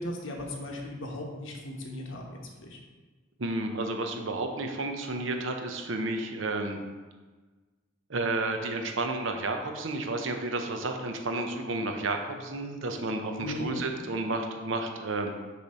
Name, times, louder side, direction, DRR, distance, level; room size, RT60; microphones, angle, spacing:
voice 1, 0.0-2.8 13.4-13.9, left 1 dB, 75° left, 0 dB, 1.2 m, -37 dB
voice 2, 3.4-6.8 8.1-15.3, right 2 dB, 70° right, 4 dB, 0.8 m, -31 dB
6.9 x 3.3 x 5.5 m, 1.3 s
head